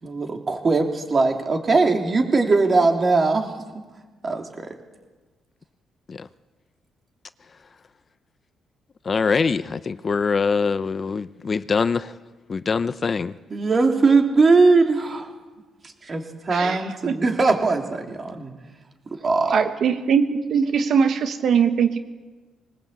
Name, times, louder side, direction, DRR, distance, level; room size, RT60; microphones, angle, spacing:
voice 1, 0.0-3.5 4.2-4.7 13.5-15.3 16.0-18.5 19.2-19.6, right 3 dB, 35° right, 3 dB, 3.4 m, -20 dB
voice 2, 9.0-12.1 12.5-13.3, left 5 dB, 40° left, 14 dB, 0.7 m, -23 dB
voice 3, 19.5-22.0, right 6 dB, 65° right, 8 dB, 1.3 m, -21 dB
20.5 x 19.5 x 8.4 m, 1.3 s
cardioid pair, 90°, 0 cm